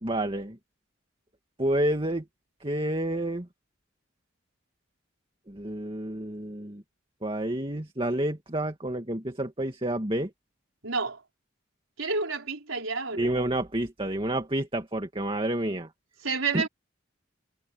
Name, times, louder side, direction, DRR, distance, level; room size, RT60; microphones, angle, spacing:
voice 1, 0.0-0.6 1.6-2.2 2.6-3.5 5.5-6.8 7.2-10.3 13.2-15.9 16.5-16.6, right 1 dB, 25° right, 2.2 m, -29 dB
voice 2, 10.8-11.2 12.0-13.3 16.2-16.7, right 4 dB, 90° right, 4.3 m, -29 dB
head